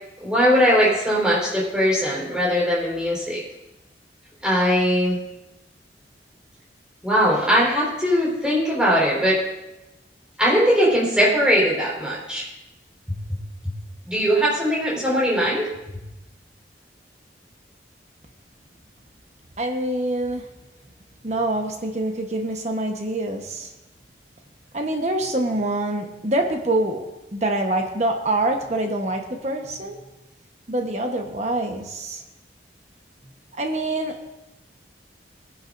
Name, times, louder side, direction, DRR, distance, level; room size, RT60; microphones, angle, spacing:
voice 1, 0.2-3.4 4.4-5.2 7.0-9.4 10.4-12.5 14.1-15.7, equal, 5° right, -5 dB, 4.5 m, -20 dB
voice 2, 19.6-20.4 21.2-23.7 24.7-27.0 27.3-30.0 30.7-32.2 33.6-34.2, right 1 dB, 40° right, 3 dB, 1.1 m, -25 dB
21.5 x 10.5 x 2.6 m, 0.96 s
head